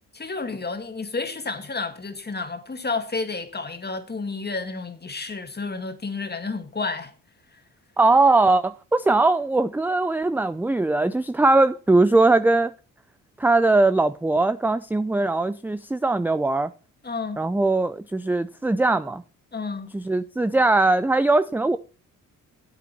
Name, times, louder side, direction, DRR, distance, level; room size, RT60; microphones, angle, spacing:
voice 1, 0.1-7.1 17.0-17.4 19.5-19.9, left 4 dB, 30° left, 2.0 m, -31 dB
voice 2, 8.0-12.7 13.4-16.7 17.4-19.2 19.9-21.8, right 2 dB, 5° right, 0.4 m, -20 dB
13.0 x 8.1 x 4.1 m
supercardioid pair, 65°, 36 cm